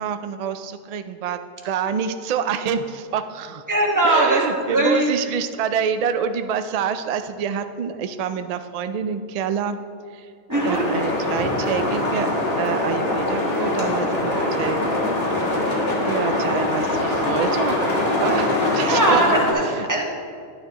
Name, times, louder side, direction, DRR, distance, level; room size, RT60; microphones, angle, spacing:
voice 1, 0.0-3.6 4.0-9.8 10.1-10.3 10.6-12.3 12.6-15.3 15.7-17.8 18.2-18.5 18.7-19.2, right 7 dB, 65° right, 9 dB, 0.3 m, -27 dB
voice 2, 3.7-5.3 10.5-10.8 18.4-20.0, right 1 dB, 15° right, -2 dB, 1.2 m, -21 dB
sound 1, 10.5-19.5, left 1 dB, 60° left, 1.8 m, -23 dB
11.0 x 9.7 x 2.9 m, 2.2 s
omnidirectional pair, 1.2 m